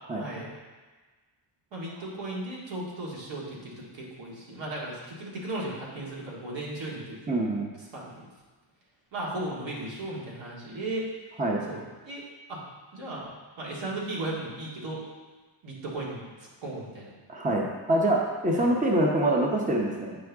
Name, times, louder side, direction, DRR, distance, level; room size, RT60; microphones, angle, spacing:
voice 1, 0.1-0.5 1.7-7.2 7.5-7.6 7.9-8.3 9.1-11.1 11.7-12.6 12.9-13.3 13.6-15.0 15.6-17.1 18.6-18.7, right 1 dB, 75° right, -5 dB, 2.2 m, -36 dB
voice 2, 7.3-7.7 11.4-11.6 17.3-20.2, right 1 dB, 15° right, -1 dB, 0.8 m, -25 dB
8.8 x 5.2 x 3.5 m, 1.3 s
cardioid pair, 120°, 46 cm